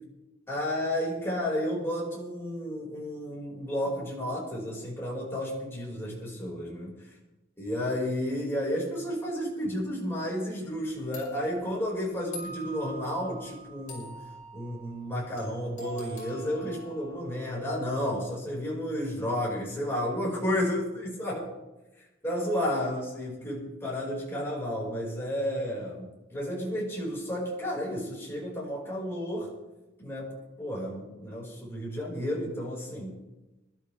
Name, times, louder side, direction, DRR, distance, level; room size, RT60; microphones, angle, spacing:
voice 1, 0.5-6.9 7.6-14.1 14.5-21.5 22.2-29.5 30.0-33.2, equal, 10° left, -5 dB, 5.1 m, -32 dB
sound 1, 10.6-10.8 11.1-17.9, equal, 40° left, 5.9 m, -45 dB
25.0 x 12.5 x 3.4 m, 1.0 s
head